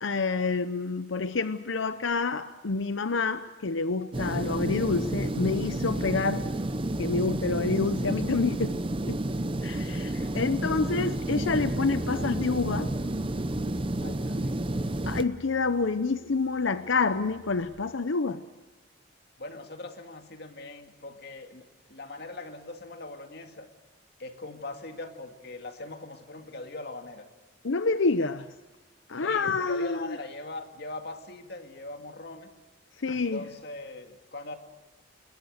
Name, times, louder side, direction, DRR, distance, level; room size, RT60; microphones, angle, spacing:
voice 1, 0.0-6.5 7.0-8.8 9.1-9.2 9.6-12.9 15.1-18.4 27.6-28.5 29.1-30.2 33.0-33.4, left 4 dB, 90° left, 11 dB, 0.8 m, -28 dB
sound 1, 4.1-15.2, right 1 dB, 30° right, 0.7 m, -30 dB
Bass guitar, 11.4-17.6, equal, 45° right, 4.5 m, -45 dB
voice 2, 14.0-14.9 19.4-23.7 24.2-27.3 29.2-32.5 33.1-34.6, left 2 dB, 60° left, 6 dB, 2.3 m, -41 dB
28.0 x 21.0 x 6.6 m, 1.2 s
head